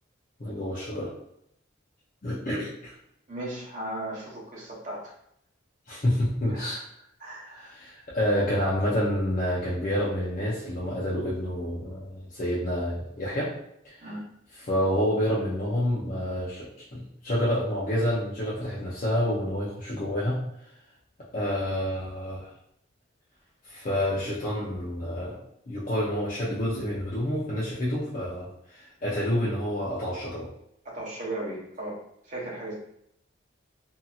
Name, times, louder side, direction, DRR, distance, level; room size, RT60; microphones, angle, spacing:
voice 1, 0.4-1.1 2.2-2.9 5.9-6.8 7.6-13.5 13.8-14.1 14.5-16.7 16.9-20.4 21.3-22.5 23.6-25.4 25.7-30.5, equal, 40° left, -8 dB, 0.6 m, -28 dB
voice 2, 3.3-5.1 6.5-6.8 7.2-7.7 14.0-14.2 30.8-32.0 32.2-32.7, right 1 dB, 40° right, -5 dB, 0.9 m, -36 dB
2.7 x 2.7 x 2.4 m, 0.76 s
head